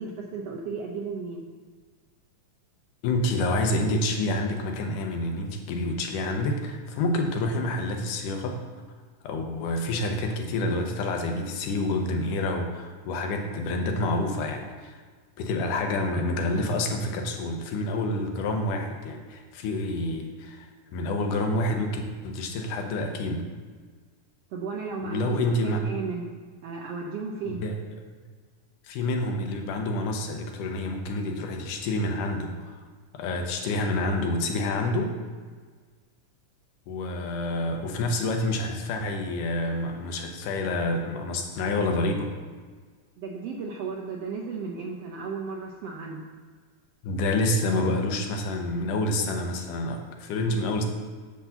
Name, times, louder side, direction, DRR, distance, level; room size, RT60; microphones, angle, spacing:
voice 1, 0.0-1.4 24.5-26.2 26.6-27.6 43.2-46.2, right 5 dB, 75° right, 0 dB, 1.4 m, -34 dB
voice 2, 3.0-8.6 9.2-15.0 15.4-23.5 25.0-25.8 27.5-27.8 28.8-32.8 33.1-35.1 36.9-42.3 47.0-50.8, left 2 dB, 90° left, 4 dB, 2.4 m, -28 dB
10.0 x 3.7 x 7.0 m, 1.5 s
omnidirectional pair, 3.7 m